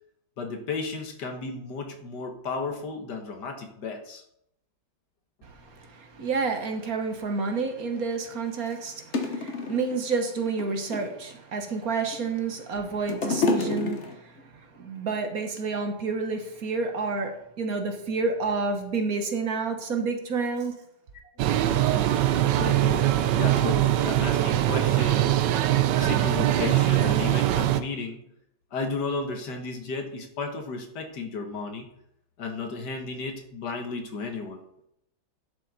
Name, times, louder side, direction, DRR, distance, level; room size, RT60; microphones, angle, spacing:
voice 1, 0.4-4.2 21.9-22.2 22.5-25.4 26.0-28.2 28.7-31.9 32.4-34.6, left 4 dB, 60° left, 4 dB, 1.8 m, -34 dB
voice 2, 5.4-20.8, right 4 dB, 50° right, 5 dB, 1.4 m, -29 dB
sound 1, 7.9-8.0 8.7-8.8 9.1-10.0 10.5-11.2 11.9-12.5 12.8-14.4 15.2-15.3, left 3 dB, 45° left, 1.1 m, -28 dB
sound 2, 21.4-27.8, right 13 dB, 75° right, 1.2 m, -22 dB
11.0 x 7.0 x 4.1 m, 0.75 s
omnidirectional pair, 2.1 m